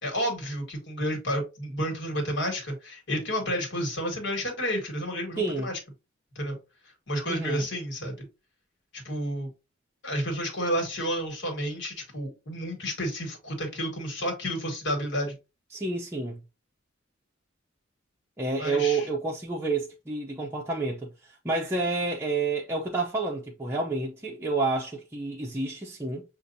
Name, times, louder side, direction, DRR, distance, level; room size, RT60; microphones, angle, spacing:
voice 1, 0.0-5.8 6.3-6.6 7.1-8.3 8.9-9.5 10.0-15.4 18.6-19.1, equal, 65° left, 1.7 m, -31 dB
voice 2, 5.4-5.7 7.3-7.7 15.7-16.4 18.4-26.2, right 3 dB, 15° right, 0.6 m, -29 dB
6.6 x 2.5 x 2.7 m
head